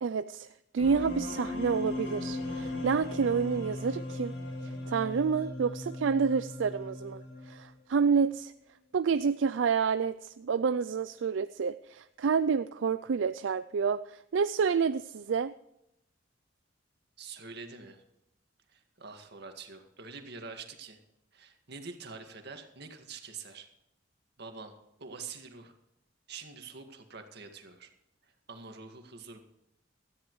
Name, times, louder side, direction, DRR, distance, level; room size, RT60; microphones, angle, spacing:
voice 1, 0.0-0.5 0.7-4.3 4.9-8.5 8.9-15.5, right 6 dB, 80° right, 13 dB, 0.4 m, -29 dB
sound 1, 0.8-7.8, left 2 dB, 75° left, 4.4 m, -38 dB
voice 2, 17.2-18.0 18.7-21.0 21.3-23.7 24.4-25.7 26.3-27.9 28.2-29.4, right 4 dB, 60° right, 5 dB, 2.0 m, -46 dB
17.5 x 13.5 x 3.2 m, 0.84 s
head